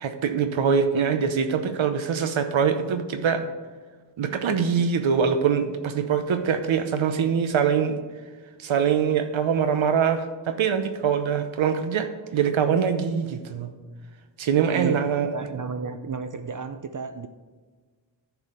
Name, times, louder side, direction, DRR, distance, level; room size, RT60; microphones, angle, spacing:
voice 1, 0.0-3.4 4.2-8.0 8.6-13.7 14.4-15.3, right 7 dB, 85° right, 8 dB, 0.8 m, -23 dB
voice 2, 14.7-17.3, right 5 dB, 45° right, 9 dB, 0.5 m, -32 dB
11.0 x 4.8 x 6.7 m, 1.4 s
wide cardioid pair, 90°, 46 cm